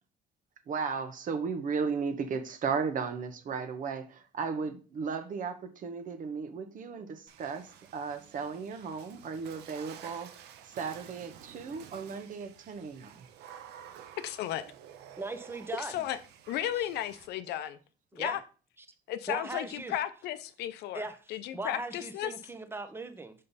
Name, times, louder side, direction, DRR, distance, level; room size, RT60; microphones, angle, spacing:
voice 1, 0.7-10.3 10.6-13.2, right 5 dB, 50° right, 1.1 m, -35 dB
Water / Splash splatter, 7.3-17.3, right 9 dB, 80° right, 0.8 m, -51 dB
voice 2, 14.2-14.6 15.8-16.2 16.5-17.8 18.1-18.4 19.1-22.3, left 12 dB, 80° left, 0.6 m, -34 dB
voice 3, 15.2-16.1 16.8-16.9 18.1-18.4 19.3-19.9 20.9-21.2 21.5-23.3, right 3 dB, 15° right, 0.9 m, -39 dB
5.6 x 5.4 x 4.1 m
cardioid pair, 110°, 17 cm